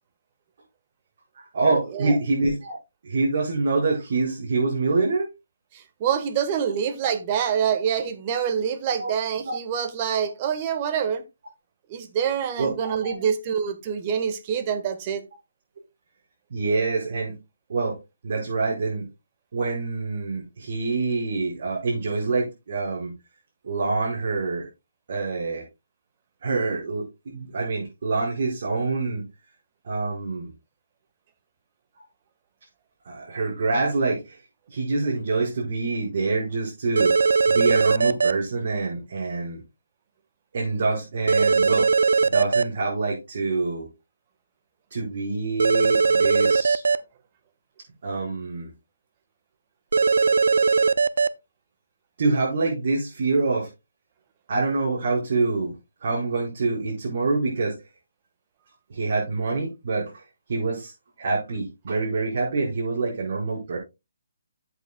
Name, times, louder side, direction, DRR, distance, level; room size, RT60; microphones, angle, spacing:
voice 1, 1.3-2.8 3.0-5.3 9.0-9.1 9.4-9.5 12.6-13.2 16.5-17.4 17.7-18.0 18.2-19.1 19.5-23.1 23.6-24.7 25.1-25.6 26.4-29.2 29.8-30.5 32.0-32.1 33.0-34.4 34.7-37.1 37.5-39.6 40.5-41.9 42.2-43.9 44.9-46.8 48.0-48.7 52.2-53.7 54.5-55.7 56.0-57.7 58.9-60.9 61.2-63.8, right 3 dB, 55° right, 4.8 m, -26 dB
voice 2, 5.7-11.2 11.9-15.2, right 8 dB, 30° right, 1.3 m, -26 dB
sound 1, 37.0-38.3 41.3-42.6 45.6-47.0 49.9-51.3, right 4 dB, 75° right, 0.5 m, -19 dB
11.0 x 8.1 x 2.2 m
hypercardioid pair, 160°, 0 cm